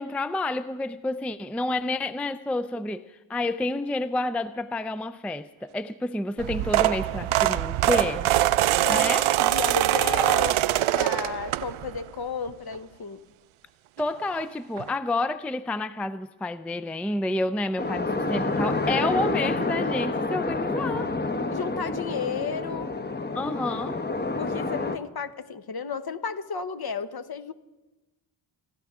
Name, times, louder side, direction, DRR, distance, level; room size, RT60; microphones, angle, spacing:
voice 1, 0.0-8.3 8.9-9.3 14.0-21.1 23.4-24.0, left 2 dB, 5° left, 13 dB, 0.4 m, -29 dB
sound 1, 6.4-12.0 12.5-12.8 14.0-14.1 14.3-14.4 14.8-14.9, right 13 dB, 85° right, 0.6 m, -23 dB
voice 2, 9.4-10.6 10.9-13.2 21.5-22.9 24.4-27.5, left 6 dB, 50° left, 10 dB, 1.0 m, -33 dB
sound 2, 17.8-25.0, left 2 dB, 20° left, 0.9 m, -28 dB
29.5 x 11.5 x 3.7 m, 1.1 s
cardioid pair, 65°, 47 cm